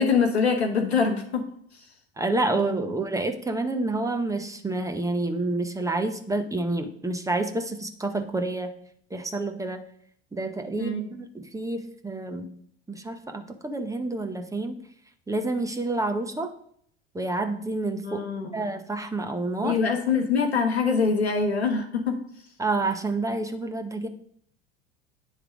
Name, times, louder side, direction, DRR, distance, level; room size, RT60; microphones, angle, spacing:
voice 1, 0.0-1.5 2.5-2.8 10.8-11.1 18.0-18.7 19.6-22.2, left 5 dB, 90° left, 5 dB, 1.0 m, -24 dB
voice 2, 2.2-8.7 9.1-9.8 10.3-12.5 12.9-14.8 15.3-16.5 17.1-18.2 18.5-19.8 22.6-24.1, right 2 dB, 10° right, 6 dB, 0.8 m, -28 dB
9.0 x 3.3 x 4.9 m, 0.65 s
hypercardioid pair, 75°, 31 cm